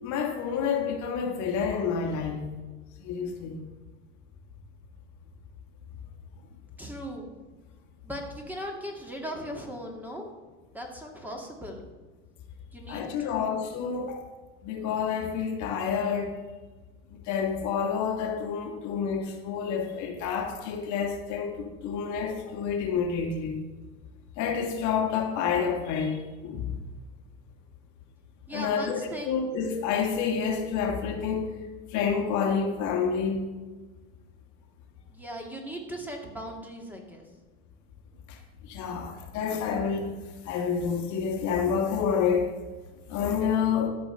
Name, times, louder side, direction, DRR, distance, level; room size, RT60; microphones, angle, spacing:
voice 1, 0.0-2.5 3.0-3.6 12.9-14.3 14.6-16.4 17.1-23.6 24.4-26.7 28.5-29.0 29.3-31.5 31.9-33.5 38.3-40.2 40.4-42.5 43.1-43.9, left 6 dB, 55° left, 2 dB, 1.8 m, -28 dB
voice 2, 6.8-7.3 8.0-10.3 10.7-11.9 12.7-13.6 28.5-29.4 35.1-37.2, equal, 5° right, 1 dB, 2.2 m, -38 dB
13.0 x 5.2 x 6.5 m, 1.3 s
supercardioid pair, 110°, 35 cm